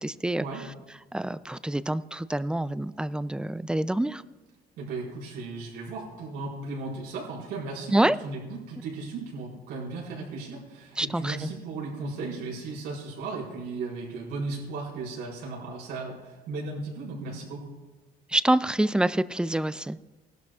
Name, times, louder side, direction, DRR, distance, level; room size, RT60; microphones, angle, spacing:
voice 1, 0.0-0.4 1.1-4.2 7.9-8.2 11.0-11.4 18.3-20.0, right 1 dB, 5° right, 15 dB, 0.3 m, -26 dB
voice 2, 4.8-17.7, right 3 dB, 85° right, -4 dB, 4.7 m, -36 dB
18.5 x 11.5 x 2.4 m, 1.2 s
cardioid pair, 110°, 17 cm